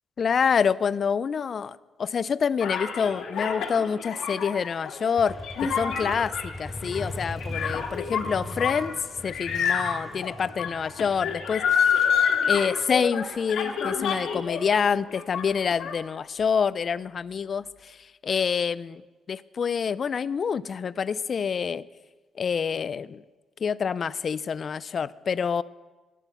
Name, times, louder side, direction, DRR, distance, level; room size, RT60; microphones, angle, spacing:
voice 1, 0.2-5.4 5.6-9.0 9.2-11.6 12.5-18.0 18.2-19.0 19.3-21.8 22.4-23.2 23.6-25.6, left 6 dB, 50° left, 18 dB, 0.3 m, -27 dB
sound 1, 2.6-14.8 15.1-15.9, left 7 dB, 75° left, 1.6 m, -28 dB
Motorcycle, 5.2-12.8, left 1 dB, 5° left, 1.1 m, -39 dB
11.0 x 8.9 x 7.1 m, 1.3 s
cardioid pair, 90°, 0 cm